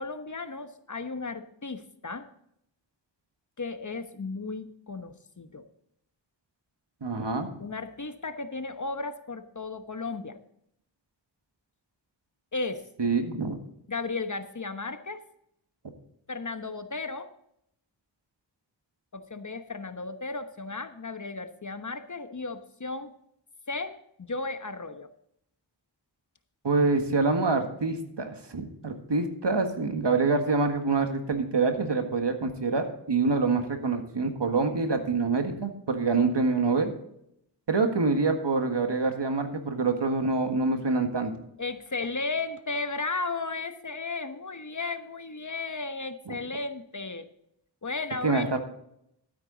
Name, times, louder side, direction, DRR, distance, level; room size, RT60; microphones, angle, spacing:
voice 1, 0.0-2.3 3.6-5.6 7.6-10.4 12.5-12.8 13.9-15.2 16.3-17.3 19.1-23.1 23.7-25.1 41.6-47.3 47.8-48.6, left 3 dB, 40° left, 9 dB, 1.0 m, -35 dB
voice 2, 7.0-7.5 13.0-13.6 26.6-36.9 37.7-41.3 46.3-46.4 48.2-48.6, right 3 dB, 65° right, 6 dB, 1.7 m, -26 dB
12.5 x 9.0 x 4.0 m, 0.75 s
cardioid pair, 45°, 45 cm